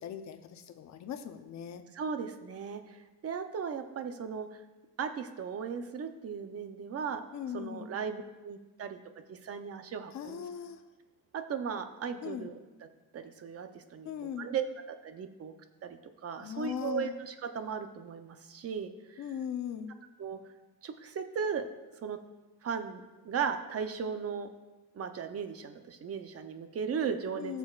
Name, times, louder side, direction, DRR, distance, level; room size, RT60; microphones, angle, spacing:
voice 1, 0.0-1.8 7.3-7.9 10.1-10.8 12.2-12.5 14.0-14.5 16.4-17.1 19.2-19.9 27.4-27.6, left 9 dB, 45° left, 7 dB, 0.7 m, -39 dB
voice 2, 1.9-4.6 5.0-7.2 7.5-9.0 9.3-10.4 11.3-12.6 13.1-14.1 14.4-14.6 14.9-15.5 15.8-19.2 20.2-20.4 20.8-21.6 22.0-22.2 22.6-24.5 24.9-27.6, right 6 dB, 40° right, 8 dB, 0.7 m, -37 dB
18.0 x 6.8 x 2.4 m, 1.2 s
cardioid pair, 145°, 38 cm